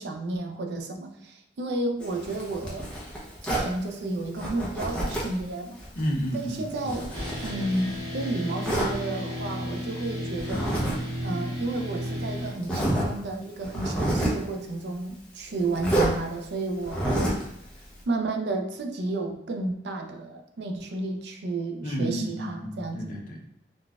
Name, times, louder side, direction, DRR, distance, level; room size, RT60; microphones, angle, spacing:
voice 1, 0.0-2.9 3.4-5.8 6.3-7.2 7.4-10.8 11.2-17.5 18.1-23.0, right 2 dB, 65° right, 5 dB, 0.4 m, -32 dB
Zipper (clothing), 2.0-3.7 4.4-5.4 5.8-8.0 8.6-8.9 10.4-11.0 11.2-11.4 12.1-12.2 12.6-13.1 13.6-14.4 15.8-16.1 16.8-17.5, right 1 dB, 5° left, 0.6 m, -28 dB
voice 2, 6.0-7.0 21.8-23.5, equal, 45° left, 0 dB, 0.6 m, -31 dB
sound 1, 7.1-12.5, equal, 20° right, 0.8 m, -33 dB
3.8 x 2.3 x 2.3 m, 0.80 s
head